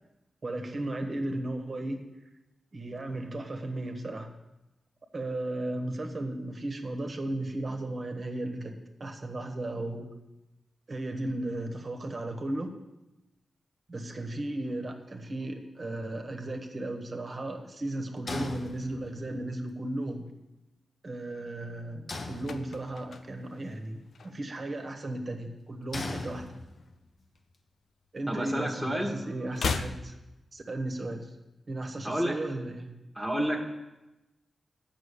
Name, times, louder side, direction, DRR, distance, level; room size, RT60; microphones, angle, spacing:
voice 1, 0.4-2.0 2.7-4.3 5.1-10.1 10.9-12.7 13.9-20.2 21.0-26.5 28.1-30.1 30.5-31.3 31.7-32.9, right 1 dB, 45° right, 4 dB, 1.4 m, -35 dB
sound 1, 18.3-19.4 22.1-23.1 25.9-27.0, left 3 dB, 55° left, 1.0 m, -39 dB
sound 2, 22.1-24.7 25.0-25.3 25.6-27.1 27.3-28.7 28.9-31.1 31.3-31.4, left 5 dB, 80° left, 0.6 m, -38 dB
voice 2, 28.3-29.1 32.0-32.4 33.1-33.7, equal, 5° left, -2 dB, 1.5 m, -29 dB
8.9 x 6.2 x 8.4 m, 1.0 s
wide cardioid pair, 85°, 0 cm